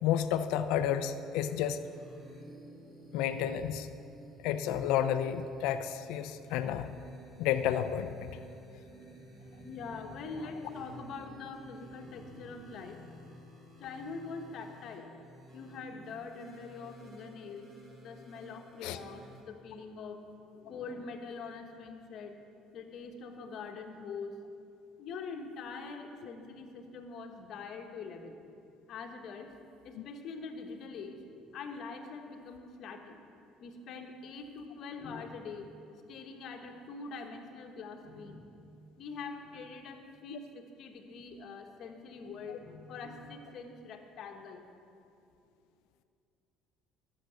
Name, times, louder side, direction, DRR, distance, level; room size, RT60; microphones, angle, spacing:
voice 1, 0.0-1.8 3.1-3.9 4.4-7.0 7.4-8.3 18.8-19.0 40.3-40.4, left 10 dB, 80° left, 10 dB, 0.5 m, -31 dB
sound 1, 1.8-19.4, right 1 dB, 30° right, 2.7 m, -53 dB
voice 2, 8.8-13.3 13.8-15.1 15.5-17.7 18.0-20.2 20.5-22.4 22.7-24.4 25.0-28.4 28.9-29.5 29.8-31.2 31.5-33.2 33.6-35.7 36.1-44.6, left 4 dB, 55° left, 4 dB, 1.4 m, -44 dB
12.5 x 6.7 x 8.0 m, 2.6 s
cardioid pair, 115°, 0 cm